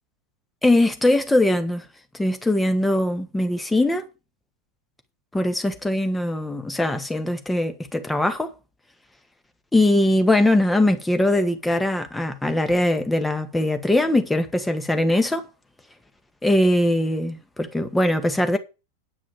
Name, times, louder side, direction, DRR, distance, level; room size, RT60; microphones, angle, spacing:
voice 1, 0.6-1.8 2.1-4.1 5.3-8.5 9.7-15.4 16.4-18.6, left 1 dB, 5° left, 2.0 m, -21 dB
9.8 x 6.1 x 7.2 m
figure-of-eight pair, 90°, 0 cm